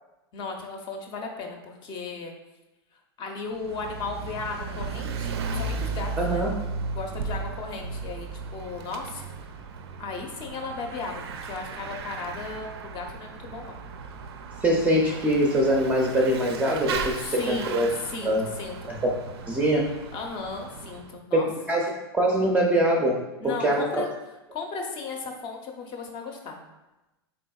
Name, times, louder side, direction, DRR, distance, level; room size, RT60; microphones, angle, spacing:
voice 1, 0.3-2.3 3.2-6.4 6.9-9.2 10.0-13.8 17.4-17.8 18.1-18.9 20.1-21.5 23.4-24.1 24.5-26.6, left 4 dB, 35° left, 2 dB, 0.6 m, -36 dB
Bicycle / Mechanisms, 3.5-21.1, right 4 dB, 75° right, 0.4 m, -35 dB
voice 2, 6.2-6.5 14.6-17.9 18.2-18.5 18.9-19.1 19.5-19.8 21.3-21.4 21.7-23.2 23.4-24.0, right 1 dB, 10° right, -2 dB, 0.5 m, -23 dB
3.8 x 3.5 x 2.3 m, 1.0 s
hypercardioid pair, 115°, 14 cm